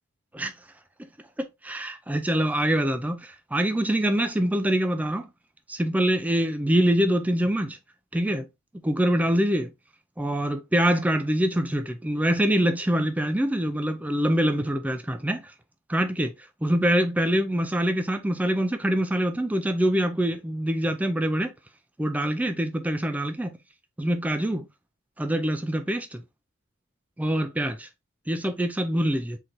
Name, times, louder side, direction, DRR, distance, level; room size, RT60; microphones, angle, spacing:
voice 1, 1.6-5.3 5.7-7.8 8.1-8.5 8.8-9.7 10.2-15.5 15.9-16.3 16.6-21.5 22.0-23.5 24.0-24.6 25.2-26.2 27.2-27.9 28.3-29.4, equal, 5° right, 0.3 m, -24 dB
3.9 x 3.2 x 2.8 m
head